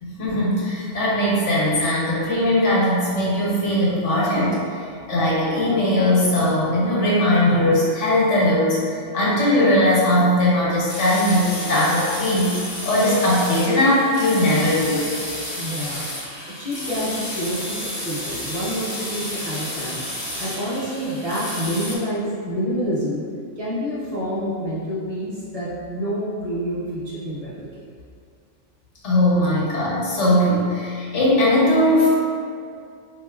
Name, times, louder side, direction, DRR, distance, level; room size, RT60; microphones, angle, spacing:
voice 1, 0.0-4.6 5.1-12.5 12.8-15.1 29.0-32.1, left 1 dB, 75° left, -7 dB, 1.2 m, -19 dB
sound 1, 10.9-22.0, left 1 dB, 55° left, 0.9 m, -31 dB
voice 2, 15.6-16.1 16.6-20.0 20.4-23.2 23.6-27.8, equal, 30° right, -9 dB, 0.9 m, -28 dB
4.0 x 2.8 x 2.3 m, 2.3 s
omnidirectional pair, 1.3 m